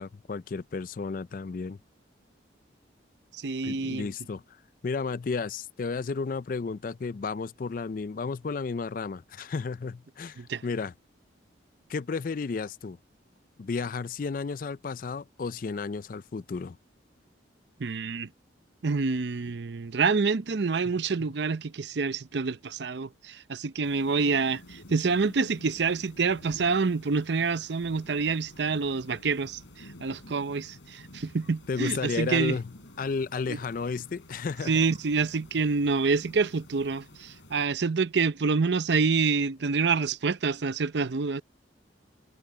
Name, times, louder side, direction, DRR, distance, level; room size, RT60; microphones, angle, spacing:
voice 1, 0.0-1.8 3.6-4.4 4.8-10.9 11.9-13.0 13.6-16.8 31.7-32.6 33.0-34.8, left 4 dB, 45° left, 0.4 m, -32 dB
voice 2, 3.3-4.1 10.4-10.6 17.8-18.3 18.8-32.6 33.5-33.6 34.7-41.4, right 4 dB, 65° right, 0.6 m, -27 dB
sound 1, 23.8-37.7, left 1 dB, 85° left, 4.8 m, -51 dB
head